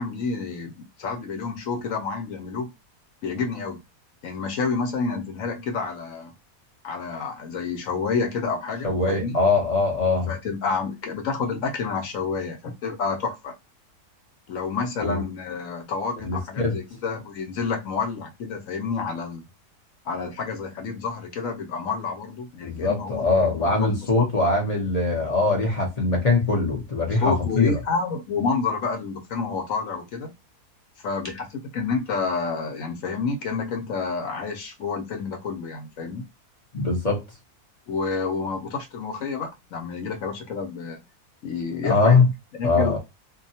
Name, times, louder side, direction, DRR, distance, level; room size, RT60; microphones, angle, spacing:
voice 1, 0.0-2.7 3.2-3.8 4.2-6.3 6.8-9.4 10.3-13.5 14.5-19.5 20.0-24.3 27.2-30.3 31.0-36.2 37.9-41.0 41.4-42.3 42.6-43.0, left 4 dB, 65° left, 0.9 m, -29 dB
voice 2, 8.8-10.3 15.0-15.2 16.2-16.8 22.6-27.8 36.7-37.2 41.8-42.3 42.6-43.0, left 3 dB, 40° left, 0.6 m, -22 dB
2.7 x 2.2 x 2.6 m
omnidirectional pair, 1.7 m